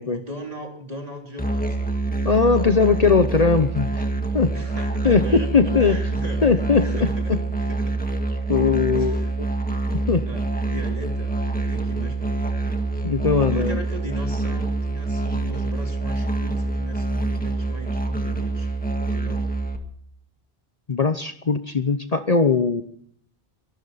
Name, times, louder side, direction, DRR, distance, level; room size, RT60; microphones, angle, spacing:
voice 1, 0.0-1.9 4.5-7.4 7.8-8.0 8.9-9.3 9.7-10.0 10.3-12.6 13.0-13.1 13.5-18.7 19.0-19.5, right 1 dB, 40° right, 1 dB, 3.8 m, -38 dB
Musical instrument, 1.4-19.8, right 2 dB, 10° left, 1.7 m, -26 dB
voice 2, 2.2-4.0 4.3-4.5 5.0-6.0 6.4-7.4 8.5-9.2 10.1-10.3 13.0-13.8 20.9-22.8, left 5 dB, 40° left, 9 dB, 0.9 m, -20 dB
24.5 x 12.0 x 4.1 m, 0.64 s
omnidirectional pair, 1.0 m